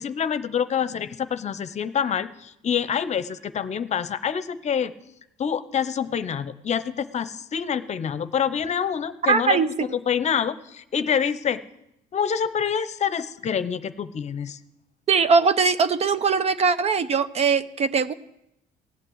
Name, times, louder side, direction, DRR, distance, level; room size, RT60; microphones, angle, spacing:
voice 1, 0.0-4.9 5.4-9.7 10.1-11.6 12.1-14.6, left 7 dB, 40° left, 13 dB, 0.8 m, -26 dB
voice 2, 9.2-10.0 15.1-18.1, right 5 dB, 40° right, 13 dB, 0.7 m, -21 dB
17.0 x 9.1 x 8.0 m, 0.82 s
cardioid pair, 110°, 17 cm